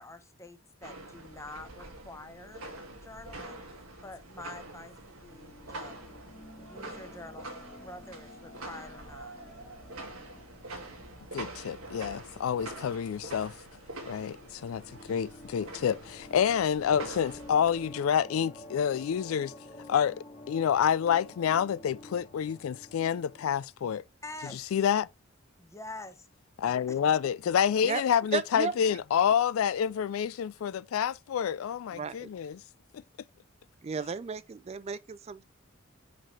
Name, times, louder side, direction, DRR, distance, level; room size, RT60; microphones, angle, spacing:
voice 1, 0.0-2.7 2.9-3.6 4.0-6.1 6.5-7.5 7.8-9.3 23.8-24.8 25.6-26.3 26.9-27.0, left 2 dB, 15° left, 0.8 m, -46 dB
sound 1, 0.8-17.9, right 2 dB, 80° right, 1.9 m, -45 dB
sound 2, 5.2-23.6, left 1 dB, 30° left, 1.5 m, -51 dB
voice 2, 11.3-13.5 14.1-14.8 15.1-19.5 19.9-20.1 20.5-24.0 24.7-25.1 26.6-32.6, left 8 dB, 80° left, 0.3 m, -28 dB
voice 3, 28.3-28.7 31.9-32.3 33.8-35.4, right 5 dB, 30° right, 0.3 m, -34 dB
5.7 x 5.2 x 3.2 m
head